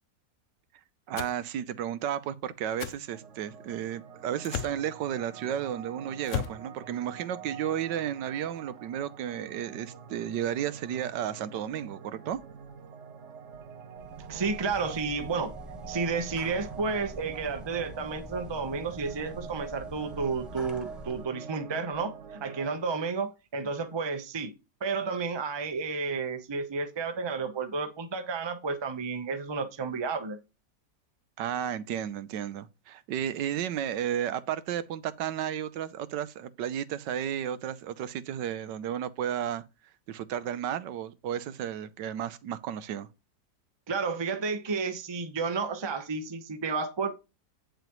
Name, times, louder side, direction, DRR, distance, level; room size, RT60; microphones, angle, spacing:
sound 1, 1.1-1.4 2.8-3.0 4.4-4.8 6.2-6.6, left 9 dB, 70° left, 0.7 m, -34 dB
voice 1, 1.1-12.4 31.4-39.6 40.1-43.1, right 10 dB, 75° right, 1.3 m, -33 dB
sound 2, 3.1-22.8, right 7 dB, 50° right, 1.1 m, -46 dB
sound 3, 13.9-21.2, equal, ahead, 1.3 m, -45 dB
voice 2, 14.3-15.5 15.9-24.5 24.8-30.4 43.9-47.2, right 4 dB, 25° right, 0.6 m, -31 dB
9.1 x 6.9 x 3.0 m
omnidirectional pair, 2.0 m